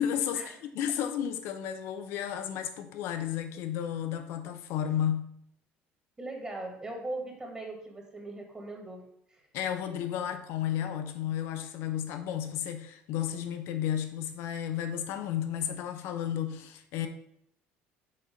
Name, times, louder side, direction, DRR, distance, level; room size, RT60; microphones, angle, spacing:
voice 1, 0.0-5.4 9.5-17.1, left 9 dB, 75° left, 0.8 m, -32 dB
voice 2, 6.2-9.4, right 2 dB, 20° right, 1.9 m, -40 dB
6.5 x 4.3 x 5.1 m
cardioid pair, 115°, 4 cm